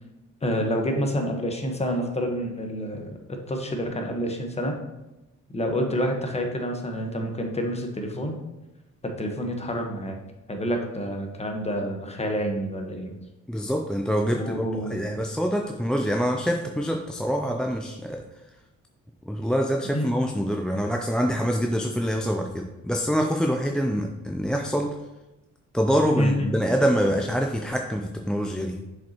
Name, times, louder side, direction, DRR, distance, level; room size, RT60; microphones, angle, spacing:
voice 1, 0.4-4.8 5.5-8.4 9.0-10.2 10.5-13.1 14.3-15.0 19.9-20.1 26.2-26.5, equal, 20° left, 3 dB, 1.1 m, -28 dB
voice 2, 13.5-14.6 14.9-18.2 19.3-25.0 25.7-28.8, equal, 5° left, 3 dB, 0.4 m, -25 dB
7.1 x 5.2 x 2.9 m, 1.0 s
cardioid pair, 90°, 30 cm